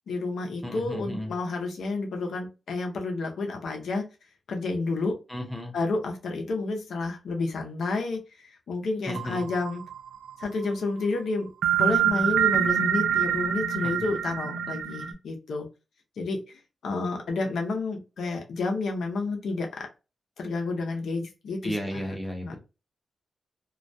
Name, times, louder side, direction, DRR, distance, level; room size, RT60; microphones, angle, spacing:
voice 1, 0.1-4.0 4.5-5.1 5.7-9.8 10.4-11.5 11.8-15.7 16.2-19.9 20.4-22.0 22.4-22.6, left 3 dB, 70° left, 3 dB, 0.6 m, -30 dB
voice 2, 0.6-1.3 5.3-5.7 9.1-9.5 13.8-14.1 21.6-22.6, equal, 5° left, 1 dB, 0.6 m, -34 dB
sound 1, 9.1-10.4 11.6-15.1, right 9 dB, 85° right, 0.3 m, -25 dB
2.2 x 2.1 x 2.6 m, 0.30 s
wide cardioid pair, 180°, 0 cm